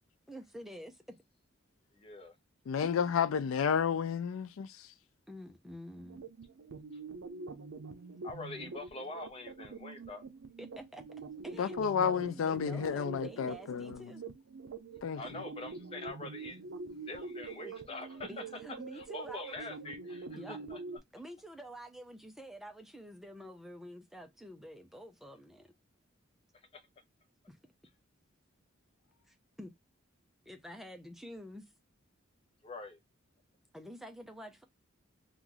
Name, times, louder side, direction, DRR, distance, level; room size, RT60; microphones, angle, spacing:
voice 1, 0.3-1.2 2.8-2.9 5.3-6.2 8.6-8.8 10.6-14.2 18.3-19.5 20.3-20.6 21.1-25.7 27.5-27.6 29.3-29.7 30.5-31.6 33.7-34.6, equal, ahead, 0.5 m, -48 dB
voice 2, 1.9-2.3 8.2-10.2 15.1-16.6 17.0-18.4 18.9-20.8 26.7-26.8 32.6-33.0, left 3 dB, 30° left, 0.7 m, -44 dB
voice 3, 2.7-4.9 11.6-14.1 15.0-15.2, left 7 dB, 85° left, 0.4 m, -31 dB
sound 1, 5.9-21.0, right 4 dB, 80° right, 0.5 m, -45 dB
3.0 x 2.4 x 3.7 m
head